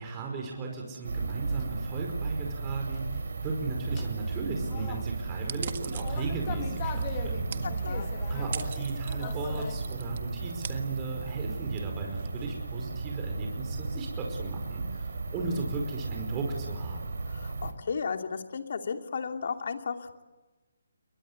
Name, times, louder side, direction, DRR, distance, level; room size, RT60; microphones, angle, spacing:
voice 1, 0.0-7.7 8.0-17.1, right 3 dB, 20° right, 1 dB, 5.1 m, -36 dB
sound 1, 0.7-0.8 1.3-1.9 2.9-3.0 4.0-5.2 5.9-9.8, left 10 dB, 30° left, 1.8 m, -42 dB
sound 2, 1.0-17.7, right 4 dB, 70° right, 4.2 m, -34 dB
sound 3, 5.4-13.1, right 7 dB, 50° right, 1.7 m, -44 dB
voice 2, 7.6-8.1 17.3-20.2, left 5 dB, 55° left, 5 dB, 2.7 m, -34 dB
29.0 x 23.0 x 8.2 m, 1.1 s
figure-of-eight pair, 155°, 0 cm